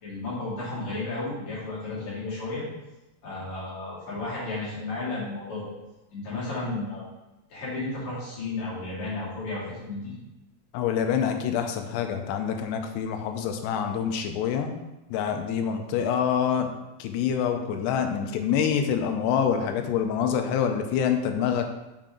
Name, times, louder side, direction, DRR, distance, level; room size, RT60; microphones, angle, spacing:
voice 1, 0.0-2.6 3.2-5.7 6.1-7.0 7.5-10.1, left 2 dB, 45° left, -9 dB, 3.6 m, -33 dB
voice 2, 10.7-14.8 15.1-16.7 17.0-21.7, left 8 dB, 85° left, 5 dB, 2.7 m, -26 dB
7.5 x 5.0 x 3.7 m, 1.0 s
omnidirectional pair, 4.9 m